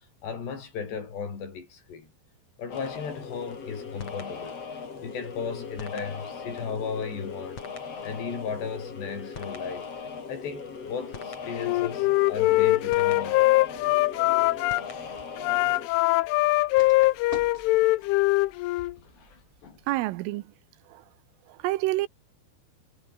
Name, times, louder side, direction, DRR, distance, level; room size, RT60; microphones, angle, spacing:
voice 1, 0.2-2.1 2.6-4.6 5.0-7.6 8.0-9.9 10.3-13.7 19.0-19.8, left 6 dB, 60° left, 7.0 m, -36 dB
sound 1, 2.7-15.9, left 5 dB, 35° left, 4.0 m, -39 dB
Wind instrument woodwind instrument, 11.5-14.8 15.4-18.9, left 19 dB, 85° left, 3.3 m, -22 dB
sound 2, 13.0-19.9, right 1 dB, 10° right, 7.7 m, -51 dB
voice 2, 19.9-20.4 20.9-21.0 21.5-22.1, right 18 dB, 85° right, 3.5 m, -28 dB
omnidirectional pair, 5.7 m